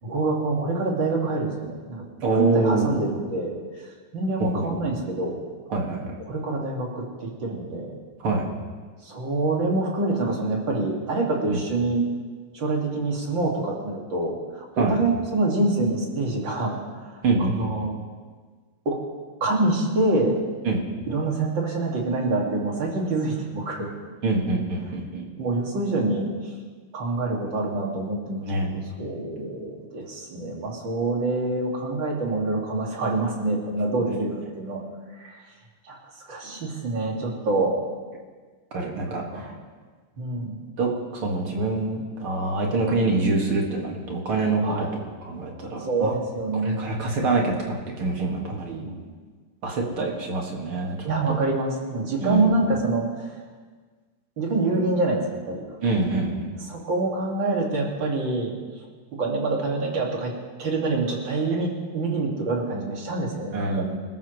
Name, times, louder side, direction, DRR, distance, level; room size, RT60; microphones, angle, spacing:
voice 1, 0.0-2.0 2.3-3.5 4.1-5.4 6.3-8.0 9.0-12.0 12.5-17.2 17.5-17.9 18.9-19.0 19.4-20.4 21.1-23.9 25.4-26.3 26.9-34.8 35.2-35.4 35.8-36.0 36.3-37.7 39.0-39.5 40.2-40.6 44.6-44.9 45.8-46.8 48.5-49.0 51.1-53.3 54.4-55.6 56.7-58.5 59.2-60.3 60.6-63.8, right 2 dB, 60° right, -1 dB, 3.1 m, -26 dB
voice 2, 2.2-3.0 4.4-4.8 5.7-6.1 8.2-8.5 11.5-11.6 14.8-15.0 17.2-17.9 20.6-20.8 24.2-25.3 28.4-28.7 34.0-34.1 38.7-39.4 40.8-46.1 46.6-47.6 48.0-48.8 49.6-51.4 52.2-52.6 55.8-56.5 61.5-61.6 63.5-63.8, right 3 dB, 80° right, -1 dB, 3.0 m, -25 dB
26.0 x 13.0 x 3.2 m, 1.5 s
omnidirectional pair, 2.4 m